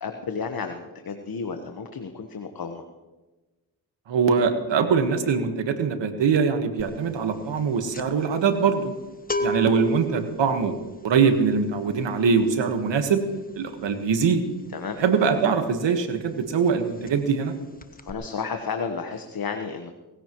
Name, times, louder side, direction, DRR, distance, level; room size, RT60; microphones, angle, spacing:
voice 1, 0.0-2.8 14.7-15.0 18.0-19.9, left 5 dB, 55° left, 6 dB, 1.3 m, -32 dB
voice 2, 4.1-8.9 9.4-10.7 11.0-13.2 13.5-14.4 15.0-17.5, right 5 dB, 85° right, 7 dB, 1.5 m, -22 dB
sound 1, 6.8-7.1 7.3-15.9 16.2-16.4 16.7-17.5 17.8-18.1, equal, 20° left, 1.1 m, -34 dB
20.0 x 15.5 x 3.1 m, 1.2 s
cardioid pair, 55°, 43 cm